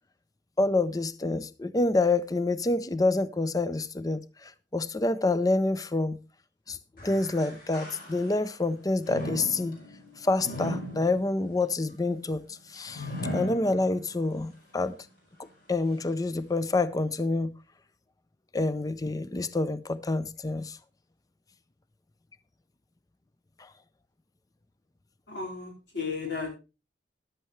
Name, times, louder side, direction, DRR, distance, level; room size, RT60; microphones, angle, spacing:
voice 1, 0.6-6.2 6.7-9.8 10.2-13.1 13.3-15.0 15.7-17.5 18.5-20.8 23.6-23.7, left 2 dB, 20° left, 0.5 m, -27 dB
sound 1, 7.0-8.5 9.0-14.3 14.8-14.9 15.7-15.8, equal, 55° left, 5.3 m, -38 dB
voice 2, 25.3-26.5, left 4 dB, 75° left, 4.6 m, -34 dB
14.0 x 11.0 x 3.2 m
head